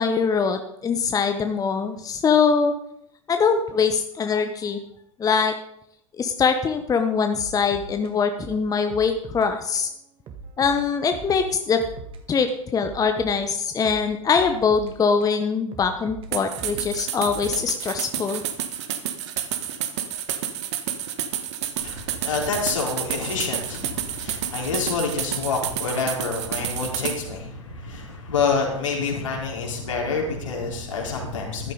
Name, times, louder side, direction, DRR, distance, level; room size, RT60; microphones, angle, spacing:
voice 1, 0.0-2.7 3.3-4.8 5.2-5.5 6.2-9.9 10.6-11.8 12.3-18.4, left 5 dB, 20° left, 7 dB, 1.1 m, -23 dB
sound 1, 7.4-9.5 9.7-9.9 10.3-12.2 12.5-15.4 15.7-18.3, right 4 dB, 30° right, 2.0 m, -41 dB
sound 2, 16.3-27.2, right 10 dB, 60° right, 1.5 m, -30 dB
voice 2, 21.8-31.7, left 4 dB, 70° left, -1 dB, 4.1 m, -27 dB
14.5 x 12.5 x 4.0 m, 0.76 s
figure-of-eight pair, 80°, 17 cm